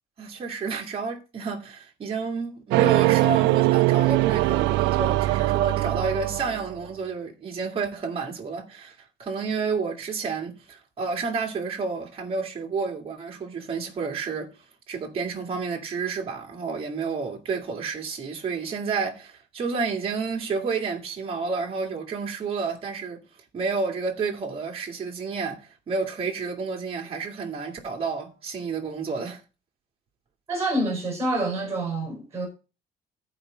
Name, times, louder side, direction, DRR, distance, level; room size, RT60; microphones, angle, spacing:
voice 1, 0.2-8.9 9.2-14.5 14.9-23.2 23.5-29.4, right 5 dB, 30° right, 2.2 m, -30 dB
sound 1, 2.7-6.8, right 18 dB, 80° right, 0.4 m, -22 dB
voice 2, 30.5-32.5, right 1 dB, 15° right, 4.8 m, -27 dB
13.5 x 5.0 x 5.1 m
cardioid pair, 165°, 18 cm